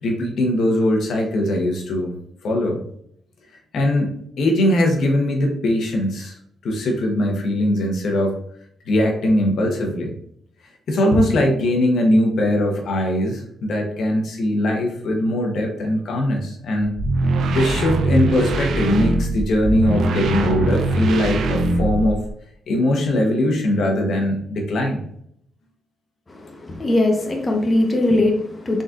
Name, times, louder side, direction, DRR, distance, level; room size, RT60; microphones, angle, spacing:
voice 1, 0.0-2.1 2.4-2.8 3.7-6.3 6.6-8.3 8.9-10.1 10.9-16.9 17.5-22.2 22.7-25.0, left 1 dB, 70° left, 1 dB, 0.9 m, -20 dB
sound 1, 17.0-22.3, right 2 dB, 75° right, 0.5 m, -21 dB
voice 2, 26.3-28.8, left 1 dB, 25° left, 1 dB, 0.9 m, -20 dB
4.0 x 3.8 x 2.4 m, 0.69 s
cardioid pair, 90°, 0 cm